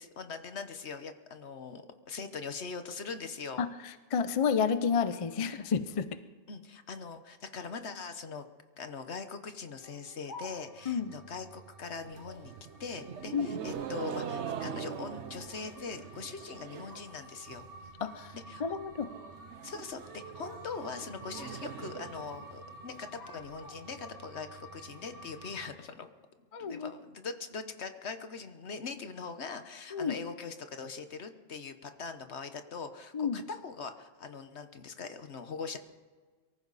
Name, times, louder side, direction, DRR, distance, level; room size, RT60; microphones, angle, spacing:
voice 1, 0.0-3.6 6.5-8.4 8.8-12.5 12.8-17.7 18.3-18.8 19.6-26.1 26.6-35.8, left 5 dB, 60° left, 9 dB, 1.4 m, -42 dB
voice 2, 4.1-6.2 10.9-11.1 13.3-13.6 18.0-19.1 26.5-26.9 29.9-30.2 33.1-33.4, left 6 dB, 40° left, 12 dB, 0.5 m, -30 dB
Speech, 9.8-10.9 12.1-12.5 13.5-14.6 15.3-16.1 16.4-17.1 17.5-17.9 18.5-18.9 20.0-20.7 21.0-21.6 21.9-22.5 22.8-24.1, left 2 dB, 15° left, 1.5 m, -52 dB
sound 1, 10.5-25.7, right 2 dB, 45° right, 2.3 m, -51 dB
sound 2, 12.0-17.1 17.4-17.9 18.2-18.3 18.5-18.6 18.9-22.9, right 8 dB, 70° right, 1.1 m, -42 dB
23.5 x 14.5 x 4.1 m, 1.5 s
omnidirectional pair, 1.3 m